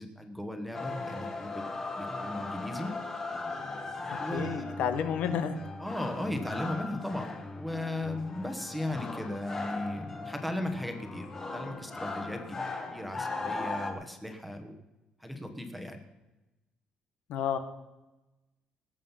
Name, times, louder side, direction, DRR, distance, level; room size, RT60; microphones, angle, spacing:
voice 1, 0.0-1.6 2.0-2.9 4.2-4.7 5.8-12.6 12.9-14.7 15.2-16.0, left 1 dB, ahead, 5 dB, 1.2 m, -36 dB
sound 1, 0.7-13.9, left 3 dB, 20° left, 1.3 m, -38 dB
voice 2, 4.3-5.6 17.3-17.6, left 8 dB, 70° left, 9 dB, 1.2 m, -30 dB
19.5 x 7.6 x 5.7 m, 1.0 s
cardioid pair, 175°, 3 cm